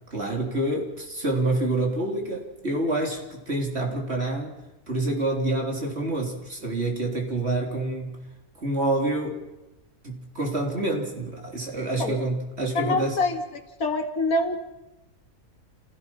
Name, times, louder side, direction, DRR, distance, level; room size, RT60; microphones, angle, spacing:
voice 1, 0.1-4.6 4.9-8.2 8.6-9.4 10.0-13.2, right 2 dB, 45° right, 0 dB, 3.9 m, -27 dB
voice 2, 12.8-13.4 13.8-14.6, left 2 dB, 80° left, 4 dB, 2.2 m, -25 dB
28.5 x 16.5 x 5.8 m, 1.0 s
omnidirectional pair, 1.5 m